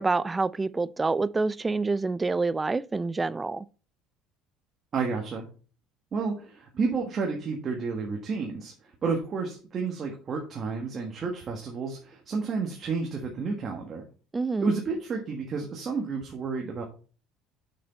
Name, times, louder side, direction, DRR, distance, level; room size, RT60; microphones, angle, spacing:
voice 1, 0.0-3.6 14.3-14.7, right 3 dB, 15° right, 0.3 m, -27 dB
voice 2, 4.9-5.5 6.1-14.0 14.6-16.8, right 4 dB, 30° right, 1.5 m, -31 dB
6.6 x 6.1 x 4.3 m
cardioid pair, 155°, 0 cm